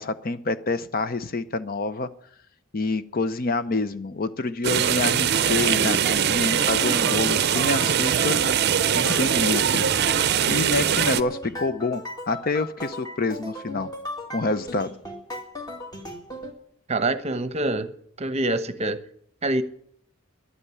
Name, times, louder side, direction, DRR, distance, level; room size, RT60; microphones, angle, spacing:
voice 1, 0.0-2.1 2.7-8.4 8.9-9.9 10.5-13.9 14.3-14.9, left 3 dB, 45° left, 13 dB, 0.7 m, -27 dB
sound 1, 4.6-11.2, right 9 dB, 55° right, 0.5 m, -22 dB
sound 2, 5.4-16.5, left 1 dB, 20° left, 2.2 m, -37 dB
voice 2, 16.9-17.9 18.2-19.0 19.4-19.6, right 2 dB, 30° right, 12 dB, 0.9 m, -25 dB
11.5 x 8.8 x 9.6 m, 0.66 s
head